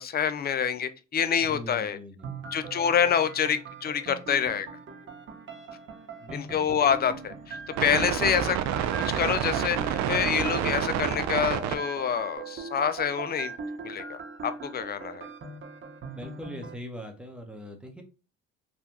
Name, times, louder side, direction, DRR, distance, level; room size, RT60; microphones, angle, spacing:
voice 1, 0.0-2.0 2.5-4.7 6.3-8.9 9.1-13.5 13.8-15.3, left 8 dB, 35° left, 12 dB, 0.4 m, -27 dB
voice 2, 1.3-2.5 6.2-6.6 16.1-18.0, equal, 5° right, 3 dB, 0.9 m, -41 dB
sound 1, 2.2-16.8, right 4 dB, 40° right, 1.0 m, -40 dB
sound 2, 7.8-11.8, right 9 dB, 65° right, 0.5 m, -28 dB
3.3 x 2.3 x 2.9 m, 0.32 s
supercardioid pair, 70°, 30 cm